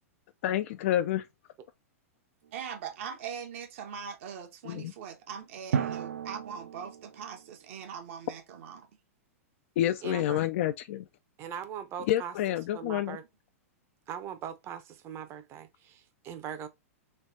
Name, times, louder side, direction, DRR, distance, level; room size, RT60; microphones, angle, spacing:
voice 1, 0.4-1.3 4.7-4.9 9.8-11.0 12.1-13.2, left 12 dB, 60° left, 0.3 m, -28 dB
Drum, 2.4-2.5 5.7-7.5, right 7 dB, 75° right, 0.4 m, -34 dB
voice 2, 2.5-8.9, right 7 dB, 60° right, 1.0 m, -41 dB
voice 3, 10.0-10.4 11.4-13.2 14.1-16.7, right 8 dB, 35° right, 0.7 m, -40 dB
3.3 x 3.1 x 2.7 m
hypercardioid pair, 115°, 8 cm